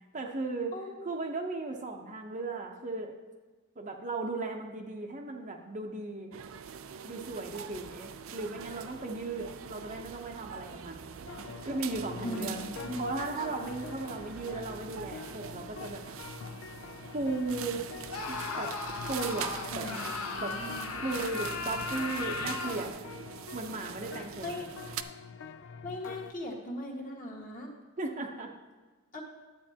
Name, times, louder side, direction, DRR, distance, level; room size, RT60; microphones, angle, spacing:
voice 1, 0.1-0.8 1.0-3.1 3.8-6.3 7.0-11.1 11.6-12.6 13.0-16.0 17.1-17.9 18.3-18.7 19.0-19.9 20.4-20.5 20.9-22.9 23.5-24.5 28.0-28.5, right 3 dB, 35° right, 2 dB, 0.8 m, -36 dB
voice 2, 0.7-1.2 12.2-13.0 19.7-20.9 24.2-24.7 25.8-27.7 29.1-29.2, left 1 dB, 40° left, -1 dB, 1.5 m, -39 dB
sound 1, 6.3-25.0, right 8 dB, 65° right, 0.4 m, -43 dB
sound 2, 11.3-26.3, left 5 dB, 55° left, 0.4 m, -46 dB
Screaming, 18.1-22.9, left 4 dB, 90° left, 1.1 m, -37 dB
11.0 x 8.3 x 2.8 m, 1.3 s
head